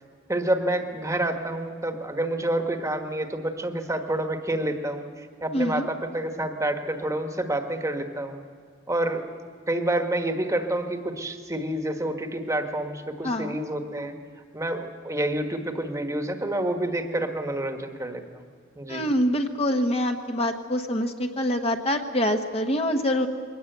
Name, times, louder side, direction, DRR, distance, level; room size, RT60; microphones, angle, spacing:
voice 1, 0.3-8.4 8.9-9.4 9.7-14.2 14.5-18.4 18.7-19.0, right 1 dB, 15° right, 6 dB, 1.5 m, -28 dB
voice 2, 5.5-5.9 13.2-13.6 18.9-23.3, equal, 30° left, 5 dB, 1.2 m, -25 dB
22.0 x 18.5 x 8.1 m, 2.1 s
head